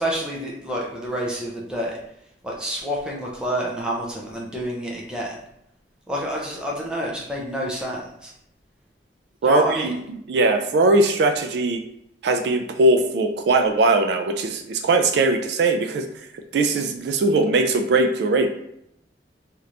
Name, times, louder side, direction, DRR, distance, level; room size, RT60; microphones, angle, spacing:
voice 1, 0.0-2.0 2.4-5.4 6.1-8.3 9.4-9.9, equal, 5° right, -3 dB, 0.6 m, -28 dB
voice 2, 9.4-11.8 12.2-16.1 16.5-18.5, right 2 dB, 65° right, 5 dB, 0.3 m, -20 dB
3.2 x 2.9 x 2.5 m, 0.77 s
head